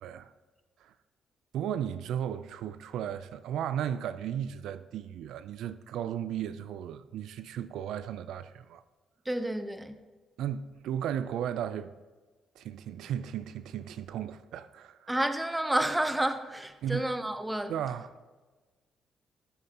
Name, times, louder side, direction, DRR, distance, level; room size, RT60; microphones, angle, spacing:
voice 1, 0.0-0.3 0.8-0.9 1.5-8.8 10.4-11.9 12.6-15.1 16.8-17.1 17.7-18.2, right 9 dB, 80° right, 0.3 m, -35 dB
voice 2, 9.2-9.9 15.1-17.7, right 1 dB, 10° right, 0.7 m, -30 dB
14.5 x 7.3 x 2.9 m
cardioid pair, 90°, 0 cm